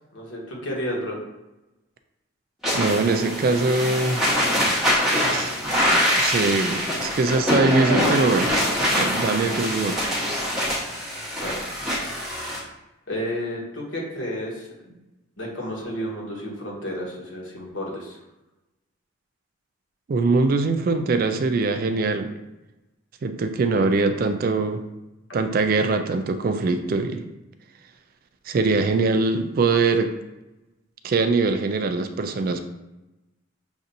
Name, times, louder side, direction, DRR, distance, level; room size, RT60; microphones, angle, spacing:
voice 1, 0.1-1.2 11.4-11.6 13.1-14.9 15.4-18.2, equal, 70° left, -2 dB, 1.3 m, -31 dB
sound 1, 2.6-12.6, equal, ahead, 1.1 m, -24 dB
voice 2, 2.7-4.2 5.3-5.6 5.9-8.5 9.0-10.1 20.1-22.4 23.2-24.8 25.3-27.2 28.5-30.1 31.0-32.7, right 3 dB, 45° right, 8 dB, 0.3 m, -22 dB
7.0 x 2.6 x 2.7 m, 0.98 s
head